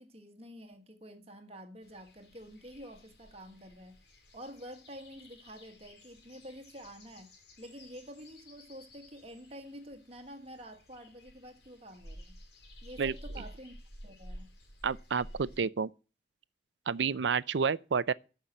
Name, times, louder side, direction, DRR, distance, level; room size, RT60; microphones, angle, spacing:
voice 1, 0.0-4.0 4.3-7.3 7.6-12.3 12.8-13.7 14.0-14.5, equal, 35° right, 1.5 m, -48 dB
sound 1, 1.8-15.6, equal, 70° left, 3.9 m, -52 dB
voice 2, 14.8-15.9 16.9-18.1, right 6 dB, 80° right, 0.5 m, -30 dB
14.0 x 5.7 x 7.7 m
head